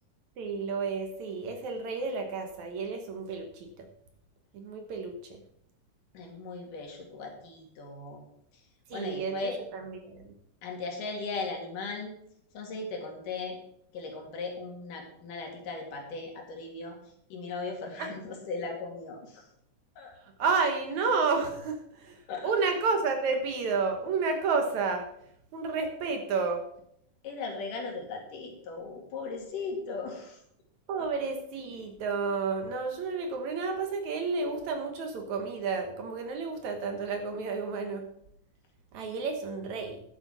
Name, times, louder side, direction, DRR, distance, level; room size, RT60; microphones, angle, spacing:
voice 1, 0.4-3.9 4.5-5.4 8.9-10.3 18.0-18.1 20.4-22.2 22.4-25.1 25.5-26.7 30.9-38.0 38.9-40.0, right 4 dB, 65° right, 5 dB, 2.3 m, -31 dB
voice 2, 6.1-8.2 8.9-9.6 10.6-12.1 12.5-13.6 13.9-17.0 17.3-19.4 20.0-20.1 22.3-22.5 27.2-30.4, left 4 dB, 70° left, 1 dB, 3.7 m, -37 dB
11.5 x 7.6 x 6.0 m, 0.72 s
omnidirectional pair, 4.0 m